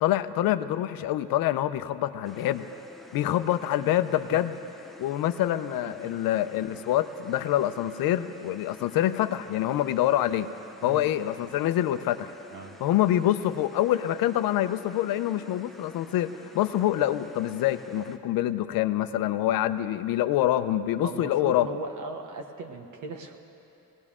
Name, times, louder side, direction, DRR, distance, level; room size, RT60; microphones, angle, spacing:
voice 1, 0.0-2.7 3.1-4.5 5.0-10.5 10.8-12.3 12.8-21.7, left 13 dB, 80° left, 11 dB, 0.6 m, -26 dB
sound 1, 2.2-18.2, left 1 dB, ahead, 0.6 m, -50 dB
voice 2, 10.8-11.1 12.5-12.8 21.0-23.4, right 3 dB, 60° right, 4 dB, 1.1 m, -39 dB
21.5 x 18.0 x 3.7 m, 2.9 s
cardioid pair, 160°, 34 cm